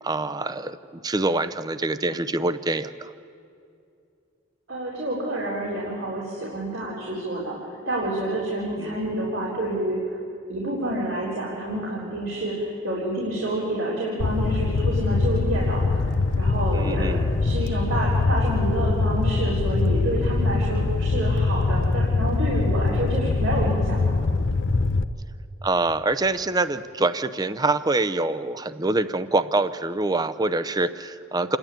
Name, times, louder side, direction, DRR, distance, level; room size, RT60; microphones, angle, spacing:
voice 1, 0.0-3.1 8.8-9.0 16.7-17.3 25.6-31.6, right 2 dB, 20° right, 12 dB, 0.6 m, -25 dB
voice 2, 4.7-7.6 7.8-10.0 10.5-24.2, right 1 dB, 80° right, -6 dB, 3.9 m, -28 dB
Fire, 14.2-25.0, left 3 dB, 65° left, 0.6 m, -23 dB
28.0 x 11.5 x 9.0 m, 2.5 s
head